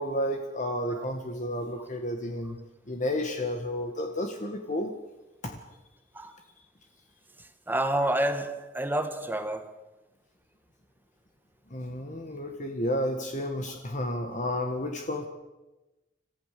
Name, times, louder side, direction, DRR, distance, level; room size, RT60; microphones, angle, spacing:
voice 1, 0.0-2.6 2.9-4.9 5.4-5.6 11.7-15.3, left 1 dB, 40° left, 1.8 m, -31 dB
voice 2, 7.4-9.9, right 1 dB, 10° right, 1.4 m, -29 dB
26.5 x 15.0 x 6.9 m
head